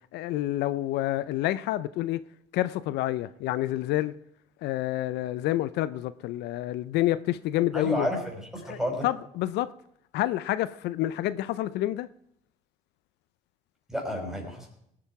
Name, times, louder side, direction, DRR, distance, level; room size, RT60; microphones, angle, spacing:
voice 1, 0.1-2.2 2.5-4.1 4.6-8.1 8.6-9.7 10.1-12.1, left 15 dB, 80° left, 0.5 m, -28 dB
voice 2, 7.7-9.1 13.9-14.7, equal, 5° right, 5.5 m, -31 dB
19.0 x 8.6 x 4.7 m
cardioid pair, 110°, 17 cm